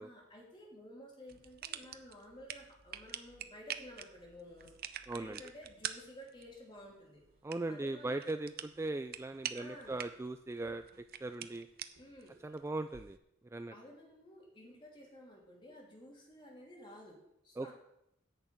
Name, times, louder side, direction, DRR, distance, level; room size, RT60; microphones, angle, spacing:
voice 1, 0.0-4.7 5.1-7.2 7.7-8.4 9.5-10.0 12.0-12.4 13.7-17.7, equal, 25° left, -2 dB, 3.0 m, -53 dB
sound 1, 1.3-13.2, right 9 dB, 50° right, 0.6 m, -47 dB
voice 2, 5.1-5.4 7.4-10.8 11.2-11.7 12.4-13.2 13.5-13.7 17.6-17.7, right 2 dB, 15° right, 9 dB, 0.3 m, -39 dB
10.5 x 5.8 x 8.3 m, 0.81 s
head